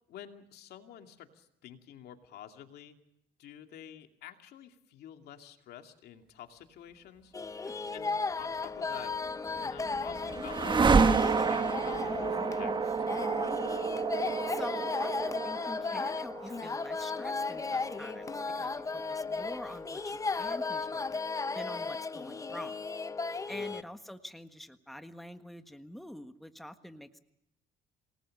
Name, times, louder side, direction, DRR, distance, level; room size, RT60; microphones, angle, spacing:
voice 1, 0.1-3.0 3.4-7.3 7.9-9.1 9.5-13.5 23.5-23.9, left 10 dB, 70° left, 6 dB, 2.5 m, -50 dB
sound 1, 7.3-23.8, left 4 dB, 20° left, 0.8 m, -35 dB
sound 2, 9.3-19.4, right 5 dB, 30° right, 1.3 m, -30 dB
voice 2, 14.5-21.2 21.5-22.8 23.3-27.2, equal, ahead, 8 dB, 1.5 m, -46 dB
28.0 x 19.5 x 6.6 m, 0.83 s
cardioid pair, 110°, 17 cm